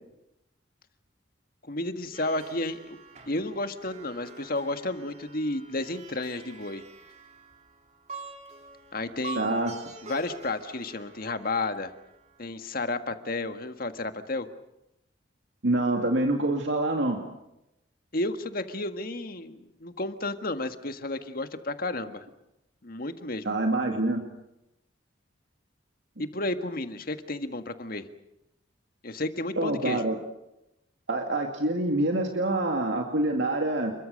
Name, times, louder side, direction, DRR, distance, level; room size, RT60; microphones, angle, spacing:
voice 1, 1.6-3.0 3.3-6.8 8.9-9.5 10.0-11.9 12.4-14.5 18.1-22.3 22.8-23.5 26.2-28.1 29.0-30.0, left 2 dB, 50° left, 8 dB, 1.7 m, -32 dB
Plucked string instrument, 2.1-12.5, right 4 dB, 35° right, 3.6 m, -46 dB
voice 2, 9.4-9.7 15.6-17.2 23.4-24.3 29.6-30.2 31.1-33.9, right 2 dB, 70° right, 2 dB, 2.5 m, -26 dB
29.5 x 22.5 x 6.6 m, 0.87 s
head